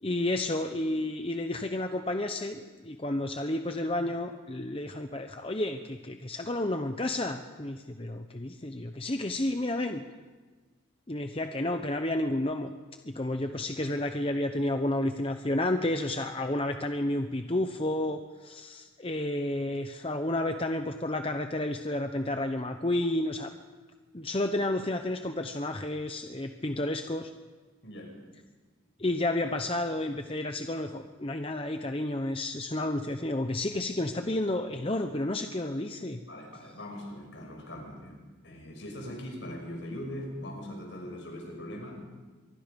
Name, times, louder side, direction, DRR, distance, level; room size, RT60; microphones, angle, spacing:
voice 1, 0.0-10.0 11.1-12.7 13.0-23.5 24.1-27.3 29.0-36.2, left 1 dB, 25° left, 6 dB, 0.8 m, -31 dB
voice 2, 27.8-28.2 36.3-42.0, left 1 dB, 65° left, 2 dB, 6.2 m, -41 dB
25.5 x 23.0 x 5.3 m, 1.3 s
head